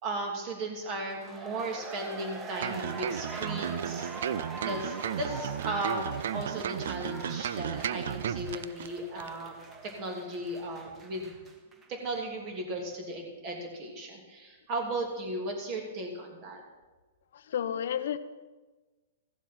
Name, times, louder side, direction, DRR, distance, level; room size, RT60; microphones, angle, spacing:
voice 1, 0.0-4.1 4.6-9.5 10.0-11.4 11.9-16.6, right 1 dB, 35° right, 2 dB, 2.8 m, -36 dB
sound 1, 1.0-11.9 12.2-12.3, right 3 dB, 20° right, 1.3 m, -43 dB
sound 2, 2.6-8.9 9.2-9.3, right 9 dB, 70° right, 0.4 m, -34 dB
voice 2, 17.3-18.2, left 9 dB, 70° left, 12 dB, 0.7 m, -31 dB
15.0 x 7.2 x 5.8 m, 1.2 s
hypercardioid pair, 140°, 0 cm